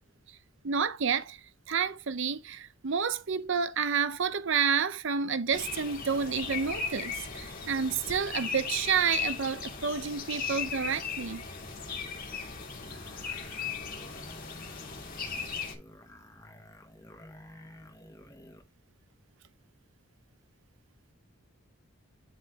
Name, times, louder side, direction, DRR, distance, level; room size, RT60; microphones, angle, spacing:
voice 1, 0.6-1.4 1.7-11.4, right 6 dB, 60° right, 0.7 m, -30 dB
sound 1, 5.5-15.7, left 5 dB, 45° left, 2.5 m, -37 dB
sound 2, 12.9-18.7, left 1 dB, 15° left, 1.1 m, -52 dB
11.0 x 3.7 x 3.5 m
head